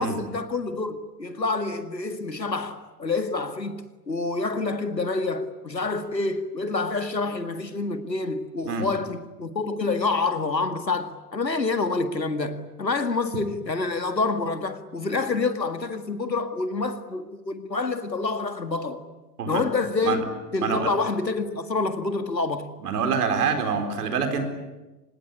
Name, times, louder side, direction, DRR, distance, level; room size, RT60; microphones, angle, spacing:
voice 1, 0.0-19.0 19.5-20.2 20.5-22.6, left 3 dB, 85° left, 2.0 m, -27 dB
voice 2, 20.6-20.9 22.8-24.4, right 5 dB, 65° right, 4.5 m, -25 dB
25.5 x 21.0 x 9.9 m
figure-of-eight pair, 90°, 49 cm